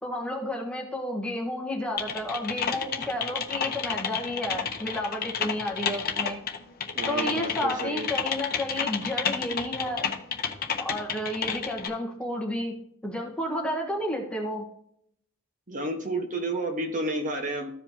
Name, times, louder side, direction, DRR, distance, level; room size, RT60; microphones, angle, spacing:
voice 1, 0.0-6.4 7.1-10.1 10.8-14.7, left 1 dB, 5° left, 0 dB, 1.3 m, -31 dB
Typing, 2.0-11.9, left 7 dB, 45° left, 1.0 m, -31 dB
voice 2, 6.9-8.1 15.7-17.7, right 2 dB, 40° right, 3 dB, 1.4 m, -31 dB
14.5 x 5.1 x 2.9 m, 0.72 s
head